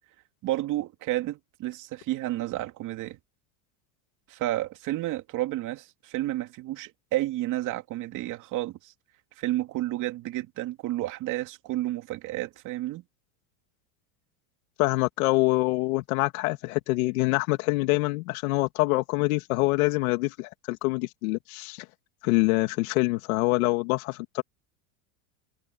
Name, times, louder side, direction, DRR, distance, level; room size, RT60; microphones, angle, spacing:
voice 1, 0.4-3.2 4.3-8.9 9.4-13.0, right 16 dB, 45° right, 2.7 m, -31 dB
voice 2, 14.8-21.9 22.2-24.4, left 22 dB, 75° left, 2.9 m, -25 dB
supercardioid pair, 145°, 42 cm